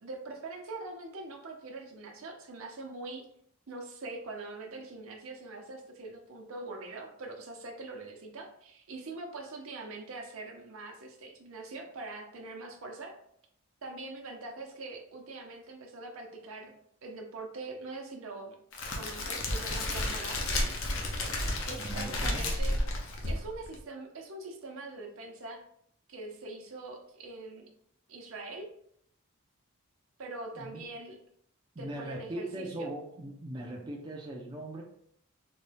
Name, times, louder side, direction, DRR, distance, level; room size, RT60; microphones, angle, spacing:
voice 1, 0.0-3.3 3.7-13.1 13.8-16.7 17.0-18.6 18.9-20.4 21.7-22.8 23.3-25.6 26.1-27.7 28.1-28.7 30.2-31.2 31.8-32.9, right 2 dB, 70° right, 2 dB, 0.8 m, -43 dB
Crackle, 18.7-23.8, left 1 dB, 70° left, 0.7 m, -32 dB
voice 2, 21.7-22.8 30.6-30.8 31.8-34.8, right 1 dB, 20° right, -2 dB, 0.4 m, -40 dB
4.0 x 2.2 x 3.3 m, 0.67 s
head